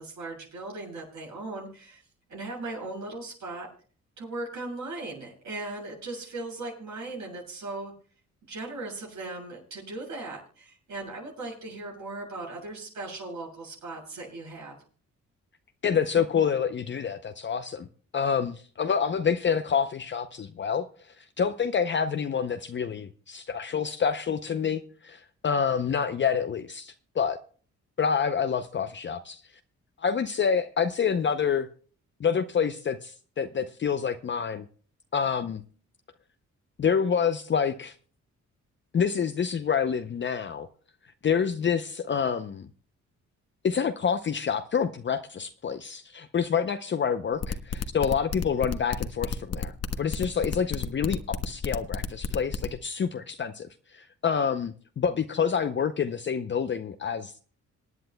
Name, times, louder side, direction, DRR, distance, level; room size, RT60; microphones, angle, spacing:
voice 1, 0.0-2.0 2.3-3.7 4.2-7.9 8.5-14.7, right 2 dB, 80° right, 7.6 m, -38 dB
voice 2, 15.8-17.9 18.1-27.4 28.0-29.4 30.0-31.7 32.2-34.7 35.1-35.6 36.8-37.9 38.9-40.7 41.2-42.7 43.6-57.4, left 7 dB, 40° left, 0.6 m, -27 dB
sound 1, 47.4-52.7, left 7 dB, 55° left, 1.0 m, -30 dB
27.0 x 9.2 x 2.2 m
cardioid pair, 85°, 29 cm